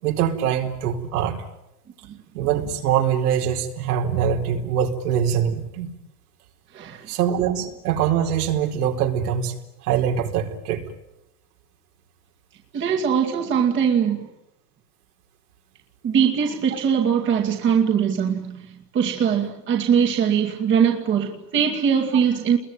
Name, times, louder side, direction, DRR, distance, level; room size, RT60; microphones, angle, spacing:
voice 1, 0.0-1.4 2.3-5.9 7.1-9.6 9.8-10.8, right 8 dB, 65° right, 4.5 m, -23 dB
voice 2, 6.7-7.1 12.7-14.3 16.0-22.6, right 7 dB, 25° right, 2.4 m, -21 dB
30.0 x 22.0 x 9.2 m
supercardioid pair, 145°, 48 cm